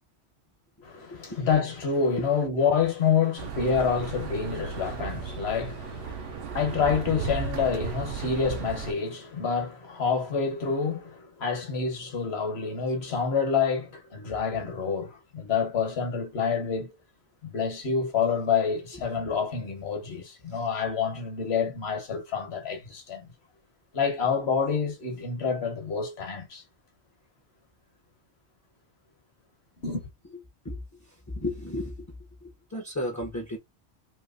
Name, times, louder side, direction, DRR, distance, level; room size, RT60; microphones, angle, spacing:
voice 1, 0.8-16.9 17.4-23.2 23.9-26.6 29.8-30.1, left 6 dB, 60° left, 1.4 m, -28 dB
sound 1, 3.4-8.9, right 6 dB, 60° right, 0.7 m, -35 dB
voice 2, 31.3-31.9 32.4-33.6, left 1 dB, 20° left, 0.6 m, -33 dB
3.1 x 2.9 x 2.5 m
omnidirectional pair, 1.2 m